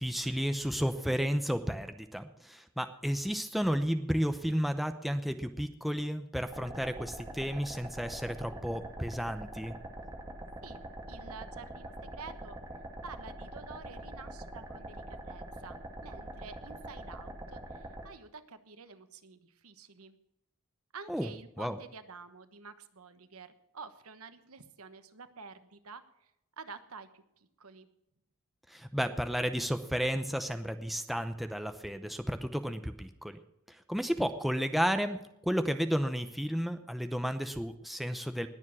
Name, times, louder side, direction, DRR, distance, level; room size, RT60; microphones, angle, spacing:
voice 1, 0.0-9.7 21.1-21.3 21.6-21.8 28.7-33.4 33.7-38.5, equal, ahead, 8 dB, 0.7 m, -32 dB
sound 1, 6.5-18.0, right 1 dB, 15° right, 2.2 m, -44 dB
voice 2, 10.6-20.2 20.9-27.9, right 5 dB, 70° right, 11 dB, 1.2 m, -50 dB
20.0 x 7.3 x 6.1 m, 0.82 s
head